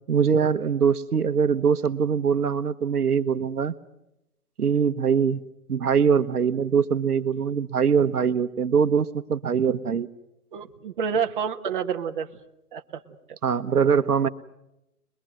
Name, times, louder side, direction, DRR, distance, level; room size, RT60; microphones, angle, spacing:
voice 1, 0.1-3.7 4.6-5.4 5.7-10.1 13.4-14.3, right 6 dB, 75° right, 11 dB, 1.3 m, -22 dB
voice 2, 10.5-12.3 12.7-13.0 13.3-13.4, right 7 dB, 35° right, 3 dB, 1.5 m, -28 dB
24.0 x 22.5 x 7.7 m, 0.86 s
hypercardioid pair, 160°, 45 cm